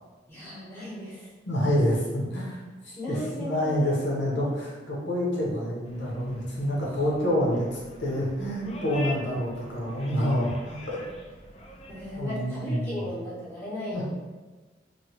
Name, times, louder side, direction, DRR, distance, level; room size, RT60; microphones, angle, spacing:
voice 1, 0.3-1.3 3.0-4.5 9.0-9.1 11.9-14.0, left 1 dB, 15° left, -12 dB, 1.2 m, -36 dB
voice 2, 1.5-2.6 2.8-11.0 12.2-13.1 13.9-14.0, equal, 80° left, -4 dB, 0.9 m, -27 dB
sound 1, 5.8-12.2, left 2 dB, 35° left, 0.4 m, -45 dB
3.1 x 2.3 x 2.9 m, 1.3 s
head